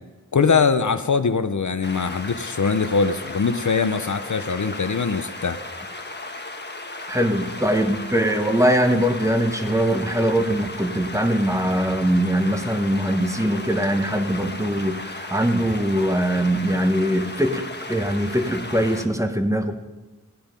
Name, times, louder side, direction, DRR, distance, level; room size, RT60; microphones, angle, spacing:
voice 1, 0.3-5.6, left 5 dB, 65° left, 10 dB, 0.7 m, -22 dB
sound 1, 1.8-19.1, left 2 dB, 30° left, 1.3 m, -35 dB
voice 2, 7.1-19.7, equal, 10° right, 6 dB, 1.1 m, -22 dB
16.0 x 9.5 x 5.2 m, 1.2 s
wide cardioid pair, 45°, 32 cm